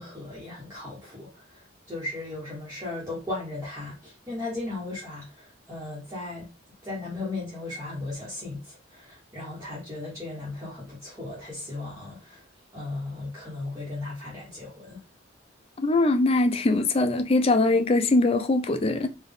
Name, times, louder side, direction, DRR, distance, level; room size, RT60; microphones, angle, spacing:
voice 1, 0.0-1.4 1.9-6.5 6.8-12.4 12.7-15.0, left 2 dB, 15° right, 1.3 m, -36 dB
voice 2, 15.8-19.1, left 2 dB, 30° left, 0.4 m, -22 dB
4.1 x 2.5 x 3.5 m
head